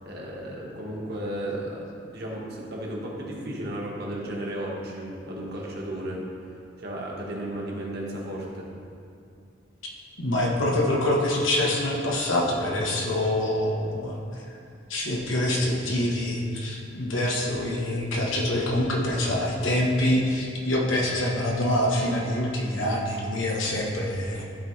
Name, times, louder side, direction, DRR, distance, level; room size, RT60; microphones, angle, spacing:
voice 1, 0.0-6.2 6.8-8.7, right 1 dB, 55° right, -3 dB, 1.4 m, -34 dB
voice 2, 10.2-14.2 14.9-24.4, left 1 dB, 90° left, -2 dB, 1.2 m, -25 dB
13.0 x 4.3 x 3.2 m, 2.5 s
head